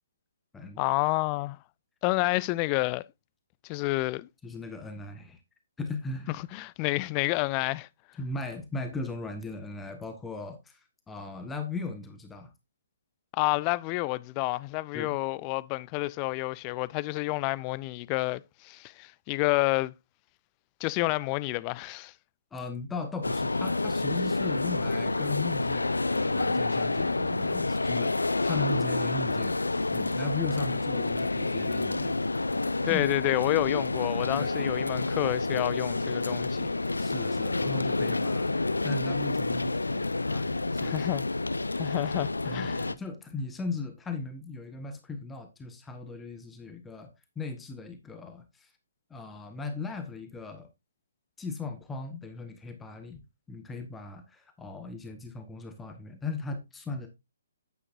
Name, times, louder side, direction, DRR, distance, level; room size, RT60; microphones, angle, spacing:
voice 1, 0.8-1.6 2.0-3.0 3.6-4.3 6.3-7.9 13.3-19.9 20.8-22.1 32.8-36.7 40.8-41.2 41.8-42.8, left 21 dB, 25° left, 0.4 m, -29 dB
voice 2, 4.4-5.4 5.8-6.4 8.2-12.5 14.9-15.2 22.5-29.6 29.9-32.2 32.9-33.0 34.4-34.7 37.0-38.6 38.8-41.0 42.5-48.7 49.1-50.7 51.4-57.1, left 3 dB, 10° left, 1.2 m, -38 dB
sound 1, 23.2-42.9, left 2 dB, 80° left, 0.6 m, -29 dB
9.7 x 9.4 x 2.6 m
figure-of-eight pair, 135°, 0 cm